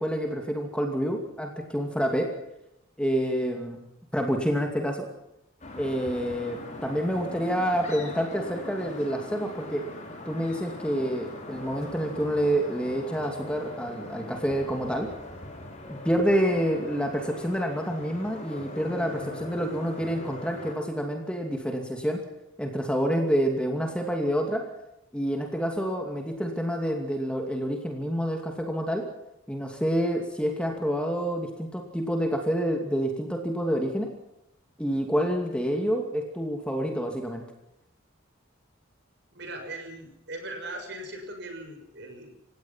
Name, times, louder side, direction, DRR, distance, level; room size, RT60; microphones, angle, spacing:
voice 1, 0.0-2.3 3.0-3.8 4.1-5.1 5.8-9.8 10.3-15.1 15.9-22.2 22.6-24.6 25.1-29.0 29.5-34.1 34.8-37.4, equal, 5° left, 3 dB, 2.5 m, -28 dB
sound 1, 5.6-20.7, left 1 dB, 35° left, 4.8 m, -41 dB
voice 2, 39.3-42.3, right 1 dB, 55° right, 4 dB, 6.6 m, -39 dB
28.5 x 17.0 x 5.8 m, 0.85 s
head